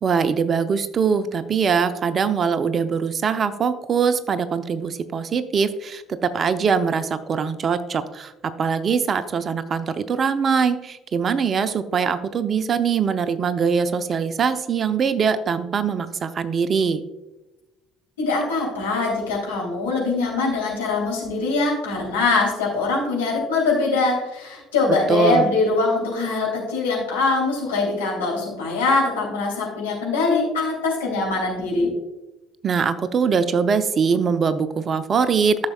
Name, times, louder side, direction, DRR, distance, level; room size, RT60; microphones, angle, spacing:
voice 1, 0.0-17.0 25.1-25.5 32.6-35.7, right 6 dB, 40° right, 12 dB, 0.6 m, -22 dB
voice 2, 18.2-31.9, left 3 dB, 75° left, -3 dB, 3.0 m, -22 dB
13.5 x 6.6 x 2.3 m, 1.0 s
figure-of-eight pair, 55°, 0 cm